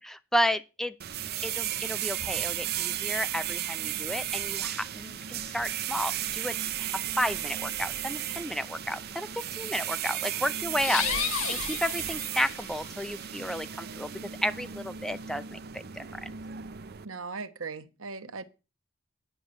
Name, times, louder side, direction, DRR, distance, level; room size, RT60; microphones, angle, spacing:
voice 1, 0.3-0.9 1.4-11.1 11.5-14.1 14.4-16.3, equal, ahead, 0.5 m, -32 dB
sound 1, 1.0-17.0, right 11 dB, 50° right, 0.6 m, -35 dB
sound 2, 10.8-12.8, left 8 dB, 85° left, 1.8 m, -32 dB
voice 2, 11.0-11.3 17.0-18.4, right 4 dB, 80° right, 1.2 m, -39 dB
10.0 x 6.4 x 7.9 m
head